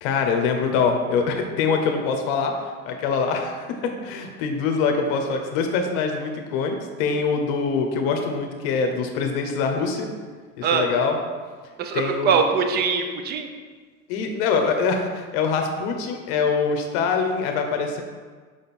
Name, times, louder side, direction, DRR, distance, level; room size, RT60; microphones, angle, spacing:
voice 1, 0.0-2.5 2.8-10.1 10.6-11.2 11.9-12.3 14.1-18.0, left 5 dB, 50° left, 4 dB, 0.9 m, -24 dB
voice 2, 11.8-13.5, right 6 dB, 25° right, 5 dB, 0.6 m, -22 dB
5.2 x 5.2 x 4.3 m, 1.5 s
hypercardioid pair, 120°, 44 cm